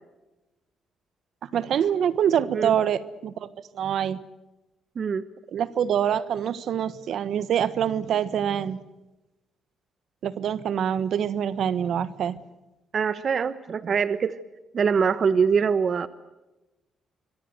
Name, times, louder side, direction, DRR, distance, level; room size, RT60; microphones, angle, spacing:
voice 1, 1.4-3.5 3.7-4.2 5.5-8.8 10.2-12.4, right 9 dB, 65° right, 15 dB, 1.3 m, -25 dB
voice 2, 12.9-14.4 14.7-16.1, right 6 dB, 50° right, 13 dB, 1.1 m, -23 dB
26.5 x 23.0 x 7.9 m, 1.0 s
cardioid pair, 90°, 0 cm